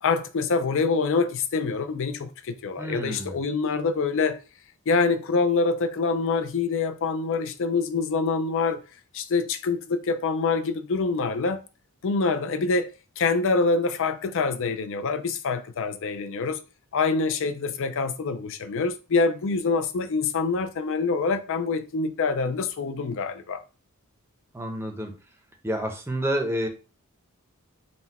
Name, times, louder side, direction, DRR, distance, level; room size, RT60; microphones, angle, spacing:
voice 1, 0.0-4.4 4.9-8.8 9.1-11.7 12.0-12.9 13.2-16.6 16.9-23.6, left 4 dB, 60° left, 0.5 m, -25 dB
voice 2, 2.8-3.4 24.5-25.1 25.6-26.7, equal, 10° right, 0.7 m, -29 dB
4.2 x 2.2 x 4.1 m
head